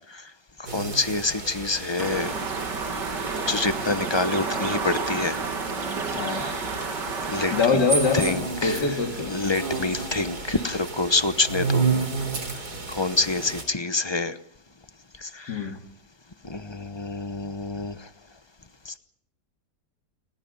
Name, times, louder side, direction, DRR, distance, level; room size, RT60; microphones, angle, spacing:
voice 1, 0.7-2.4 3.5-5.4 7.3-7.8 8.1-8.8 9.3-11.9 12.9-14.4 15.2-15.6 16.4-18.0 18.9-19.0, left 3 dB, 20° left, 11 dB, 0.7 m, -26 dB
sound 1, 0.7-13.6, right 4 dB, 65° right, 3.9 m, -32 dB
sound 2, 2.0-7.7, right 4 dB, 80° right, 2.8 m, -30 dB
voice 2, 6.1-6.5 7.5-9.3 15.5-15.8, left 4 dB, 75° left, 2 dB, 2.8 m, -24 dB
29.0 x 20.0 x 5.5 m, 0.68 s
omnidirectional pair, 1.8 m